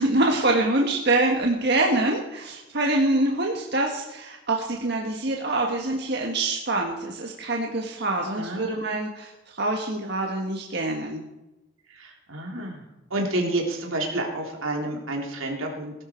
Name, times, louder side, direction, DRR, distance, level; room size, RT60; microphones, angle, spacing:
voice 1, 0.0-11.2, right 2 dB, 55° right, 1 dB, 1.6 m, -25 dB
voice 2, 11.9-12.8 13.1-15.9, right 1 dB, 85° right, 0 dB, 3.6 m, -29 dB
19.5 x 11.5 x 4.6 m, 0.98 s
head